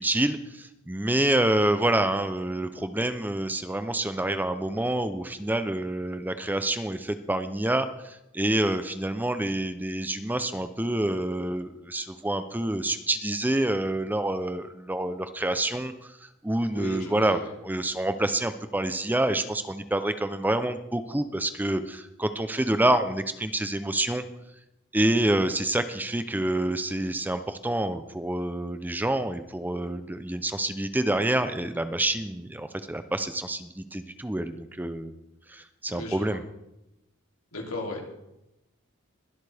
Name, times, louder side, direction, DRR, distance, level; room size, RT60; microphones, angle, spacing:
voice 1, 0.0-24.2 24.9-35.1 35.5-36.4, right 1 dB, 10° right, 10 dB, 0.5 m, -27 dB
voice 2, 16.7-17.5 35.9-36.4 37.5-38.1, left 1 dB, 85° left, 0 dB, 2.9 m, -36 dB
22.0 x 8.1 x 3.4 m, 0.88 s
head